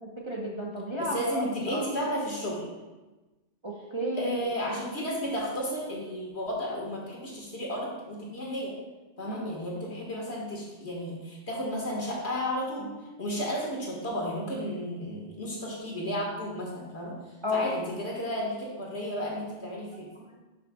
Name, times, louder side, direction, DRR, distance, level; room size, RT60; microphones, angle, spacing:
voice 1, 0.0-1.8 3.6-4.3 9.2-9.5 17.4-17.6, left 1 dB, 30° right, -3 dB, 0.8 m, -32 dB
voice 2, 1.0-2.7 4.2-8.8 9.2-17.2 17.5-20.1, equal, 65° left, -3 dB, 1.9 m, -33 dB
10.5 x 5.7 x 2.3 m, 1.1 s
omnidirectional pair, 1.2 m